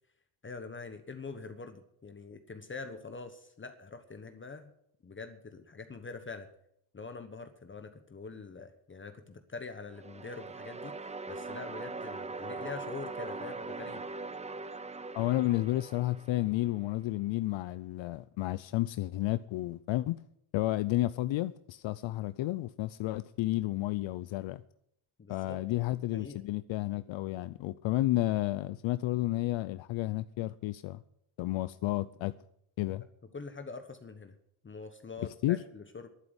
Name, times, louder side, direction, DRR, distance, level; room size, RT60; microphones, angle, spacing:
voice 1, 0.4-4.7 5.0-6.5 6.9-14.1 25.2-25.6 26.1-26.4 33.3-34.4 34.6-36.1, left 4 dB, 25° left, 1.1 m, -44 dB
sound 1, 9.9-16.9, right 3 dB, 15° right, 0.6 m, -41 dB
voice 2, 15.1-20.2 20.5-24.6 25.3-31.0 31.4-32.3 32.8-33.0 35.4-35.6, left 16 dB, 65° left, 0.6 m, -31 dB
11.5 x 9.6 x 8.0 m
cardioid pair, 110°, 50 cm